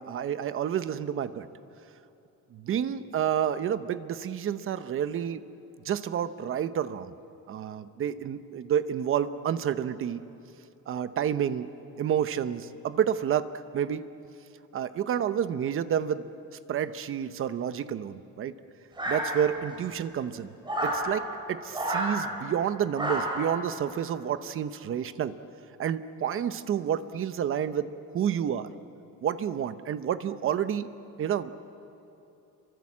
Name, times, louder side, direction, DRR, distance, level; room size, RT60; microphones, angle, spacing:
voice 1, 0.0-1.5 2.5-5.4 5.8-7.1 7.5-10.2 10.9-11.7 12.0-14.1 14.7-16.3 16.7-18.5 19.1-20.5 20.8-25.3 25.8-28.7 29.2-30.9 31.2-31.5, right 9 dB, 40° right, 12 dB, 0.9 m, -29 dB
sound 1, 19.0-19.7 20.6-21.1 21.7-22.1 22.9-23.5, right 1 dB, 15° right, 5.5 m, -29 dB
28.5 x 24.0 x 7.5 m, 3.0 s
cardioid pair, 170°, 32 cm